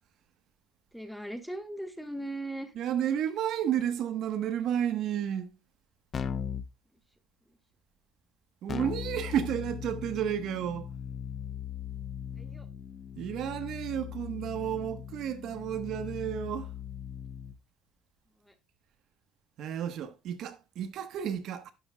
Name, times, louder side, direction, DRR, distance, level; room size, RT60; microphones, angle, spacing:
voice 1, 0.9-2.7 12.3-12.7 18.5-18.6, right 1 dB, ahead, 1.2 m, -38 dB
voice 2, 2.7-5.5 8.6-10.9 13.2-16.7 19.6-21.7, right 9 dB, 55° right, 1.0 m, -32 dB
Keyboard (musical), 6.1-6.7 8.7-17.6, left 8 dB, 30° left, 0.6 m, -39 dB
11.5 x 7.2 x 2.2 m
cardioid pair, 150°, 0 cm